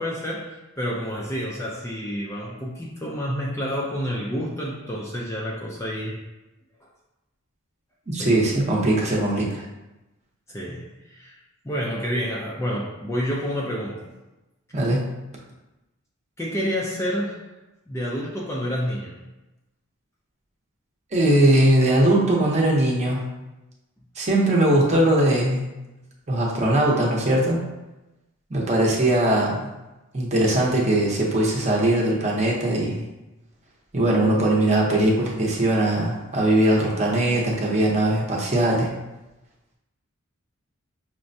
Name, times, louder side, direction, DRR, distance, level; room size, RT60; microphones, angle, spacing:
voice 1, 0.0-6.2 8.2-8.4 10.5-11.4 11.6-14.1 16.4-17.5 17.9-19.2, equal, 15° left, -4 dB, 0.4 m, -29 dB
voice 2, 8.1-9.6 14.7-15.0 21.1-23.2 24.2-25.6 26.3-27.6 28.5-29.7 30.1-33.1 33.9-38.9, right 1 dB, 30° right, -3 dB, 0.7 m, -20 dB
5.8 x 2.1 x 2.6 m, 1.0 s
head